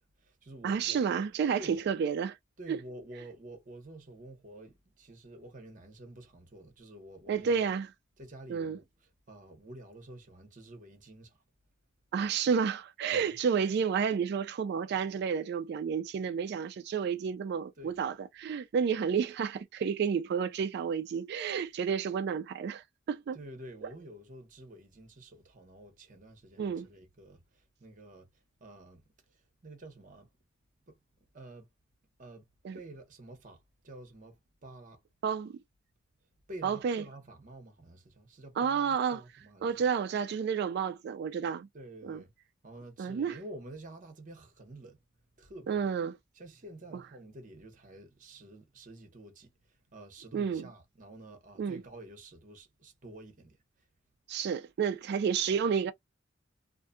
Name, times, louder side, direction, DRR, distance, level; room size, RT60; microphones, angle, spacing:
voice 1, 0.0-1.0 1.6-1.8 2.6-7.7 8.2-8.8 9.3-11.4 13.1-13.4 17.8-17.9 23.3-29.0 29.3-30.3 30.9-31.0 31.3-31.7 32.2-32.5 32.7-35.0 36.5-39.8 41.7-42.3 42.6-45.0 45.4-45.8 46.3-53.6, right 1 dB, 45° right, 0.9 m, -49 dB
voice 2, 0.6-2.4 2.7-2.8 7.3-7.9 8.5-8.8 12.1-23.4 26.6-26.9 32.6-32.8 35.2-35.5 36.6-37.0 38.6-39.2 39.6-41.7 42.0-42.2 43.0-43.4 45.7-46.2 50.3-50.7 51.6-51.8 54.3-55.9, right 6 dB, 60° right, 0.3 m, -30 dB
2.5 x 2.3 x 2.4 m
head